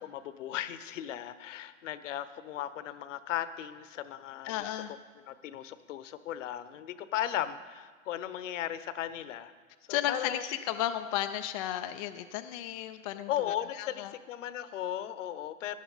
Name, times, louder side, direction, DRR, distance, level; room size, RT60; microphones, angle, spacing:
voice 1, 0.0-4.8 5.3-9.5 9.9-10.4 13.3-15.8, left 11 dB, 60° left, 13 dB, 1.0 m, -36 dB
voice 2, 4.4-5.0 9.9-13.3 13.7-14.1, left 12 dB, 30° left, 8 dB, 0.4 m, -33 dB
16.5 x 11.0 x 4.0 m, 1.5 s
hypercardioid pair, 125°, 42 cm